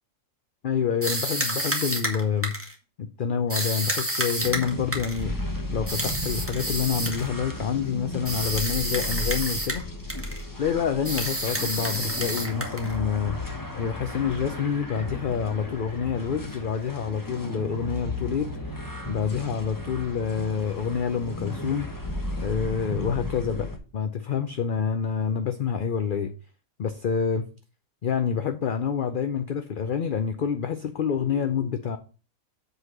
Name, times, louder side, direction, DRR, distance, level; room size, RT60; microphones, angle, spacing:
voice 1, 0.6-2.5 3.0-5.3 5.7-9.8 10.6-21.9 22.4-26.3 26.8-27.5 28.0-32.0, left 7 dB, 55° left, 8 dB, 0.6 m, -27 dB
sound 1, 1.0-2.7 3.5-5.2 5.9-7.3 8.2-9.8 10.1-10.4 11.0-13.0, right 1 dB, 10° right, 1.4 m, -29 dB
sound 2, 4.4-23.8, left 1 dB, 15° left, 1.1 m, -35 dB
7.9 x 4.1 x 6.0 m, 0.35 s
omnidirectional pair, 1.5 m